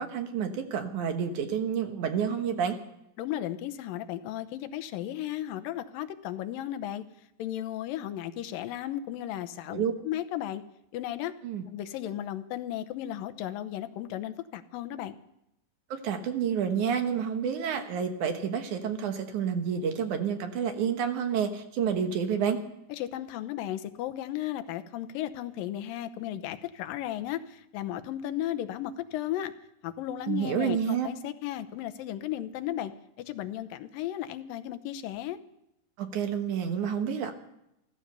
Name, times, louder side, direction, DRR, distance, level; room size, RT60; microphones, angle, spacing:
voice 1, 0.0-2.8 9.7-9.9 11.4-11.6 15.9-22.6 30.3-31.1 36.0-37.3, right 7 dB, 65° right, 6 dB, 2.4 m, -29 dB
voice 2, 3.2-7.0 7.4-10.6 10.9-11.3 11.7-15.2 22.9-29.5 29.8-32.9 33.3-35.4, left 12 dB, 75° left, 10 dB, 2.4 m, -35 dB
14.5 x 14.5 x 6.8 m, 0.82 s
omnidirectional pair, 4.3 m